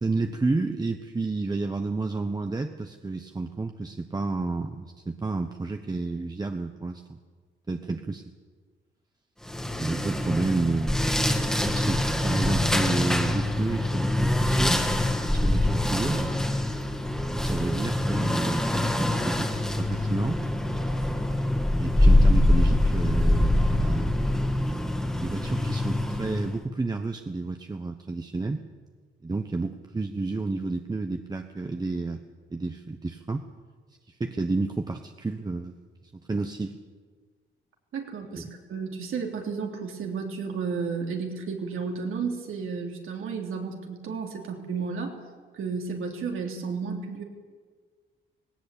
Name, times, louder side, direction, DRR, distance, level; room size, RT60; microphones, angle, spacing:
voice 1, 0.0-7.2 7.7-8.2 9.6-11.0 11.6-14.8 15.3-16.3 17.3-20.5 21.8-24.4 25.2-28.6 29.2-32.2 32.5-33.4 34.1-35.7 36.3-36.8 38.3-38.4, right 3 dB, 20° right, 5 dB, 0.9 m, -30 dB
sound 1, 9.4-26.6, left 1 dB, 5° left, 1.9 m, -24 dB
voice 2, 37.9-45.1 45.5-47.2, right 5 dB, 90° right, 1 dB, 3.3 m, -32 dB
18.5 x 17.5 x 8.4 m, 1.5 s
cardioid pair, 120°, 21 cm